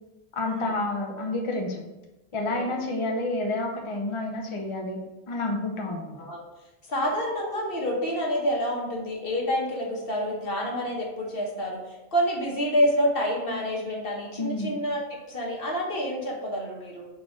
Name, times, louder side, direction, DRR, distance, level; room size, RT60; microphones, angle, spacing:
voice 1, 0.3-1.8 2.3-5.0 5.3-6.2 14.4-14.7, left 2 dB, 35° left, 1 dB, 0.7 m, -29 dB
voice 2, 2.5-3.1 5.9-6.4 6.9-17.1, equal, 65° left, -1 dB, 1.4 m, -28 dB
4.6 x 4.3 x 4.9 m, 1.0 s
omnidirectional pair, 1.0 m